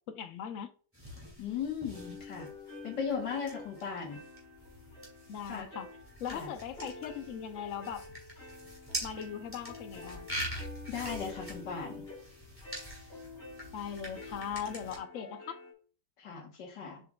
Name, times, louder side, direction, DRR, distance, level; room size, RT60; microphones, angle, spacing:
voice 1, 0.1-0.7 5.3-5.9 6.2-8.1 9.0-10.3 13.7-15.6, left 8 dB, 55° left, 1.0 m, -39 dB
sound 1, 0.9-15.0, equal, 5° right, 2.3 m, -44 dB
voice 2, 1.4-2.5 2.8-4.2 5.5-5.7 6.3-6.5 10.9-12.0 16.2-17.0, left 6 dB, 80° left, 1.9 m, -37 dB
sound 2, 1.9-15.7, left 2 dB, 35° left, 2.0 m, -49 dB
7.7 x 5.4 x 2.3 m
omnidirectional pair, 1.9 m